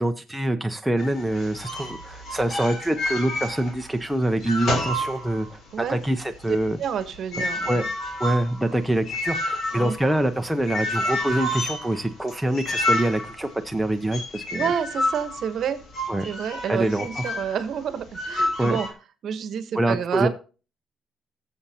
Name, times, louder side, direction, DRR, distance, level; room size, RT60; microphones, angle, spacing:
voice 1, 0.0-5.6 5.9-6.8 7.7-7.8 8.2-14.7 16.1-16.3 16.7-17.2 18.6-18.8 19.7-20.3, right 1 dB, 5° right, 5 dB, 0.5 m, -25 dB
sound 1, 1.0-4.0 4.3-5.7 6.1-17.6 18.1-18.9, left 1 dB, 55° left, 2.9 m, -29 dB
voice 2, 6.5-7.8 9.7-10.0 14.5-15.8 16.2-18.9 19.2-20.3, right 8 dB, 55° right, 11 dB, 1.0 m, -29 dB
19.5 x 7.1 x 2.8 m, 0.34 s
cardioid pair, 160°, 0 cm